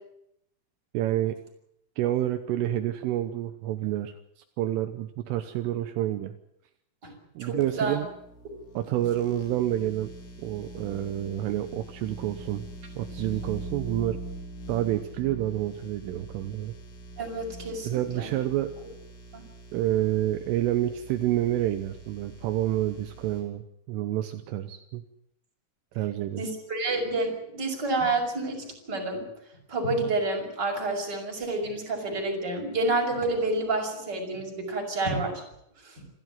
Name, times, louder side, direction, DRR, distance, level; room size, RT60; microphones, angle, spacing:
voice 1, 0.9-1.4 2.0-4.1 4.6-6.3 7.4-8.1 8.8-10.1 10.4-12.6 13.0-14.2 14.7-16.8 17.9-18.7 19.7-25.0 26.0-26.5, right 13 dB, 80° right, 8 dB, 3.4 m, -28 dB
voice 2, 7.4-8.0 17.2-18.3 19.3-19.4 26.4-29.3 29.7-35.4 35.8-36.0, right 2 dB, 20° right, 2 dB, 6.0 m, -29 dB
sound 1, 7.6-23.4, right 1 dB, 70° left, 7.8 m, -44 dB
27.5 x 14.0 x 9.5 m, 0.76 s
omnidirectional pair, 6.0 m